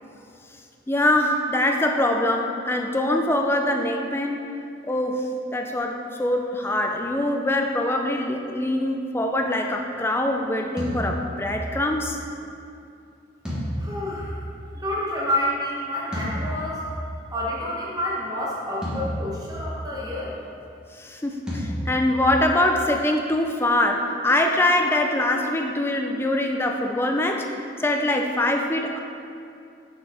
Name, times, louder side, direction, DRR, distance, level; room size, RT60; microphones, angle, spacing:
voice 1, 0.9-4.4 4.9-12.2 20.9-27.5 27.8-29.0, left 1 dB, 15° left, 3 dB, 0.4 m, -23 dB
sound 1, 10.8-12.0 13.4-15.0 16.1-17.3 18.8-20.0 21.5-22.6, equal, 5° right, 1.4 m, -32 dB
voice 2, 13.8-14.4 14.7-16.8 17.3-20.3, left 1 dB, 20° right, -6 dB, 1.1 m, -28 dB
6.6 x 4.7 x 4.8 m, 2.5 s
head